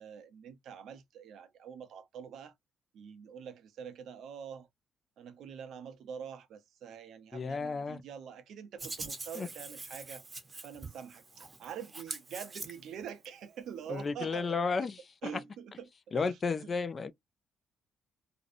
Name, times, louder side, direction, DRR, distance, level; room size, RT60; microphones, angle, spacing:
voice 1, 0.0-2.5 2.9-4.7 5.2-10.2 10.6-14.9 15.2-16.7, right 7 dB, 75° right, 0.6 m, -45 dB
voice 2, 7.3-8.0 9.4-9.5 13.9-14.9 16.1-17.1, left 4 dB, 40° left, 0.3 m, -32 dB
Hands, 8.8-13.3, right 3 dB, 25° right, 0.7 m, -44 dB
2.6 x 2.0 x 2.5 m
cardioid pair, 90°, 0 cm